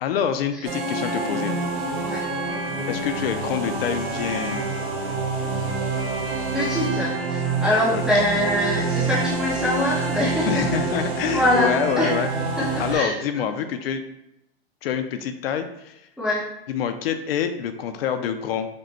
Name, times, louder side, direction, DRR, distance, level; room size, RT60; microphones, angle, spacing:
voice 1, 0.0-1.6 2.9-4.7 7.9-8.0 10.4-12.3 12.8-14.0 14.8-16.0 16.7-18.7, left 8 dB, 65° left, 8 dB, 0.5 m, -26 dB
sound 1, 0.6-12.9, right 3 dB, 65° right, 1.6 m, -27 dB
voice 2, 6.5-10.6 10.9-11.0 11.3-12.1 12.6-13.2 16.2-16.4, left 1 dB, ahead, -8 dB, 0.4 m, -24 dB
5.1 x 2.2 x 4.3 m, 0.85 s
supercardioid pair, 155°, 33 cm